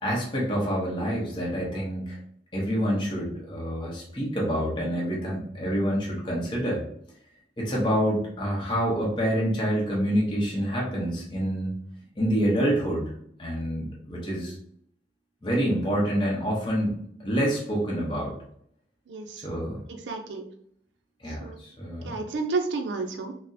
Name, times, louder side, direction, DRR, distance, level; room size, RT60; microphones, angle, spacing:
voice 1, 0.0-2.2 2.5-6.8 7.6-11.7 12.2-13.1 13.4-14.5 15.4-16.9 17.2-18.3 19.4-19.8 21.2-22.2, equal, 25° left, -4 dB, 0.8 m, -27 dB
voice 2, 19.1-19.5 19.9-20.4 21.3-21.6 22.0-23.3, right 3 dB, 90° right, 4 dB, 0.4 m, -31 dB
4.1 x 2.0 x 2.6 m, 0.67 s
head